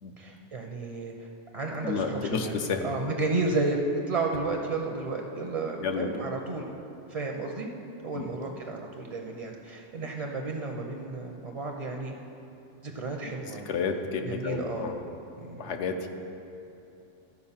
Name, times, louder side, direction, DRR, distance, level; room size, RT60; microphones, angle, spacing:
voice 1, 0.2-1.3 1.5-2.5 2.8-3.8 4.1-6.7 7.1-7.7 8.0-12.1 12.8-13.7 14.2-14.9 15.4-15.7, right 3 dB, 40° right, 1 dB, 0.5 m, -32 dB
voice 2, 1.8-2.9 5.8-6.2 8.1-8.2 13.7-15.0 15.6-16.1, left 5 dB, 70° left, 5 dB, 1.0 m, -30 dB
13.5 x 4.7 x 5.6 m, 2.8 s
omnidirectional pair, 1.3 m